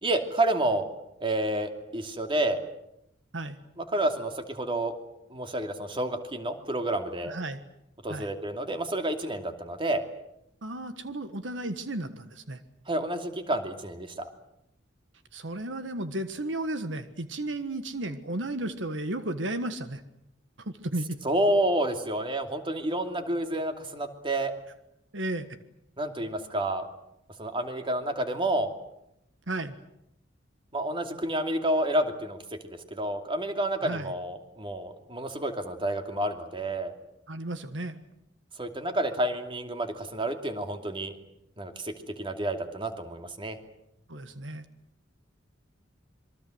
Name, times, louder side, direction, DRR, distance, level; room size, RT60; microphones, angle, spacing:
voice 1, 0.0-0.8 1.2-2.6 3.8-4.9 5.3-7.3 8.0-10.0 12.9-14.3 21.2-24.5 26.0-26.9 27.4-28.7 30.7-32.4 32.6-36.9 38.6-41.1 41.6-43.6, right 1 dB, 30° right, 6 dB, 2.7 m, -29 dB
voice 2, 7.2-7.6 8.1-8.3 10.6-12.6 15.3-20.0 20.6-21.2 25.1-25.5 29.5-29.8 33.8-34.1 37.3-38.0 44.1-44.7, right 1 dB, 70° right, 10 dB, 1.5 m, -34 dB
27.0 x 23.5 x 7.9 m, 0.81 s
head